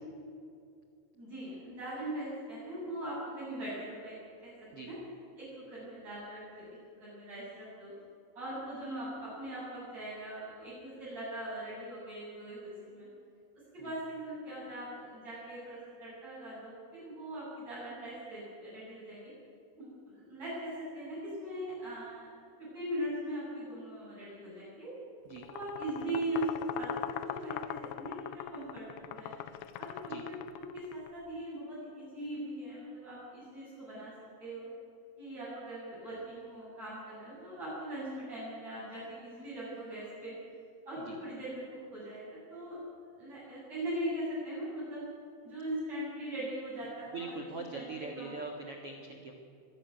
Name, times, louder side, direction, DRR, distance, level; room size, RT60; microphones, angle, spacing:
voice 1, 1.2-4.9 5.4-6.7 7.0-7.9 8.4-13.1 13.7-19.3 19.8-22.3 22.6-24.9 25.5-29.3 29.8-34.1 34.4-34.7 35.2-40.4 40.9-42.8 43.2-45.0 45.4-47.3 47.7-48.3, right 1 dB, 35° right, -10 dB, 8.8 m, -40 dB
sound 1, 25.4-31.1, left 12 dB, 80° left, 2.6 m, -41 dB
voice 2, 47.1-49.3, right 3 dB, 85° right, 2 dB, 1.2 m, -42 dB
23.5 x 13.0 x 9.5 m, 2.4 s
omnidirectional pair, 5.5 m